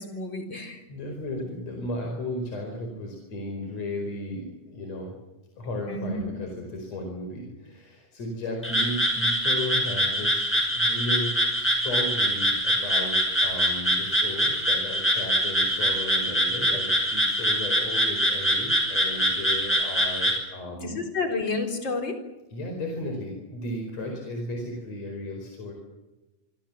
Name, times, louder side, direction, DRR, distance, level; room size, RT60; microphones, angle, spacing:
voice 1, 0.0-0.8 5.9-6.2 20.8-22.2, left 3 dB, 35° left, 4 dB, 4.3 m, -30 dB
voice 2, 0.9-5.2 5.6-21.0 22.5-25.7, left 1 dB, 55° left, 1 dB, 5.9 m, -35 dB
Frog, 8.6-20.4, equal, 5° left, 5.2 m, -24 dB
26.0 x 25.5 x 7.4 m, 1.0 s
omnidirectional pair, 3.6 m